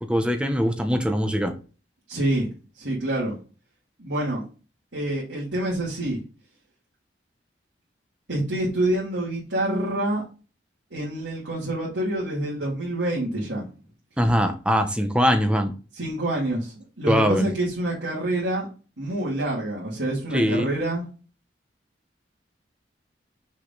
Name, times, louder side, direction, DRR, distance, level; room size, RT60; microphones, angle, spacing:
voice 1, 0.1-1.5 14.2-15.7 17.1-17.5 20.3-20.7, equal, 5° right, 6 dB, 0.8 m, -22 dB
voice 2, 2.1-2.5 2.8-3.4 4.0-4.4 4.9-6.2 8.3-10.2 10.9-13.6 16.0-18.7 19.0-21.0, right 1 dB, 80° right, -6 dB, 2.5 m, -27 dB
6.3 x 5.0 x 3.9 m, 0.34 s
head